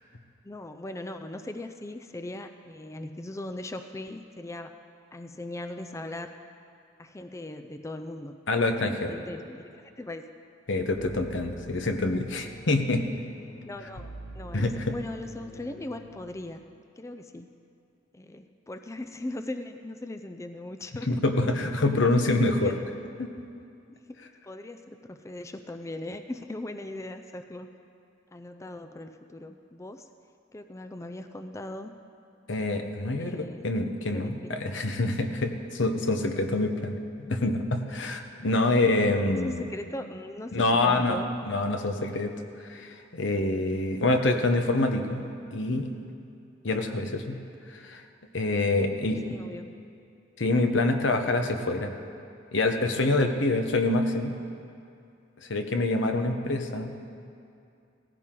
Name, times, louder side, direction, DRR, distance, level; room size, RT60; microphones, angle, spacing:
voice 1, 0.4-4.7 5.1-6.3 7.0-8.4 8.8-10.3 13.6-16.6 17.0-17.5 18.1-21.1 22.0-22.8 23.9-27.7 28.3-30.1 30.5-31.9 33.2-33.7 34.1-34.5 38.5-38.6 39.4-41.3 49.2-49.8, left 1 dB, 15° left, 7 dB, 0.4 m, -39 dB
voice 2, 8.5-9.1 10.7-13.1 14.5-14.9 21.1-22.7 23.2-23.3 32.5-39.6 40.5-41.2 41.5-42.3 42.6-45.2 45.5-45.9 46.6-47.4 47.7-48.0 48.3-49.4 50.4-51.9 52.5-54.3 55.5-56.9, left 2 dB, 80° left, 5 dB, 1.1 m, -26 dB
sound 1, 10.9-16.2, right 1 dB, 60° left, 1.8 m, -46 dB
17.5 x 15.0 x 3.8 m, 2.6 s
head